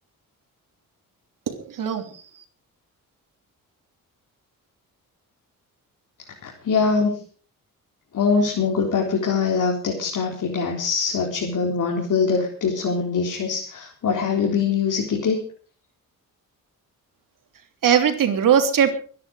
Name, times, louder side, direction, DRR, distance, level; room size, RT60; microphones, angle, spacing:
voice 1, 1.5-2.1 17.8-18.9, right 8 dB, 70° right, 6 dB, 3.2 m, -20 dB
voice 2, 6.4-7.1 8.1-15.4, left 5 dB, 60° left, -1 dB, 4.2 m, -23 dB
23.5 x 10.5 x 5.0 m, 0.43 s
cardioid pair, 100°, 34 cm